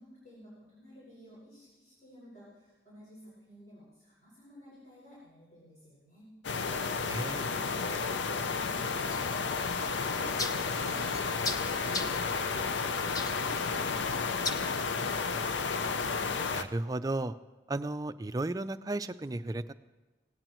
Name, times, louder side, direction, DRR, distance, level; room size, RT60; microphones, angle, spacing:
voice 1, 0.0-6.3, equal, 45° left, -9 dB, 5.6 m, -54 dB
sound 1, 6.4-16.6, left 5 dB, 85° left, 0.6 m, -32 dB
voice 2, 7.1-7.5 16.5-17.4 17.7-19.7, right 2 dB, 20° right, 11 dB, 0.4 m, -34 dB
sound 2, 9.1-14.5, left 2 dB, 20° left, 0.6 m, -40 dB
18.0 x 17.5 x 3.1 m, 1.2 s
head